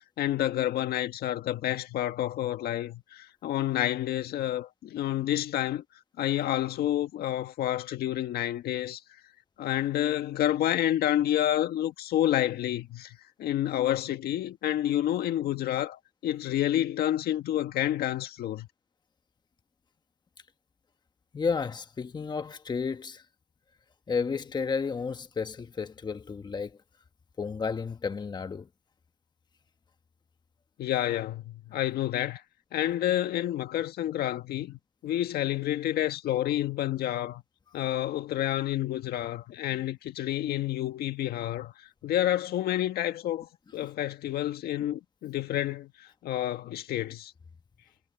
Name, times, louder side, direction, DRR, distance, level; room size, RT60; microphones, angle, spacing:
voice 1, 0.2-5.8 6.2-9.0 9.6-18.7 30.8-32.4 32.7-37.4 37.7-47.3, left 12 dB, 70° left, 1.7 m, -29 dB
voice 2, 21.3-23.2 24.1-26.7 27.4-28.7 43.8-43.9, left 5 dB, 25° left, 1.2 m, -32 dB
cardioid pair, 110°, 17 cm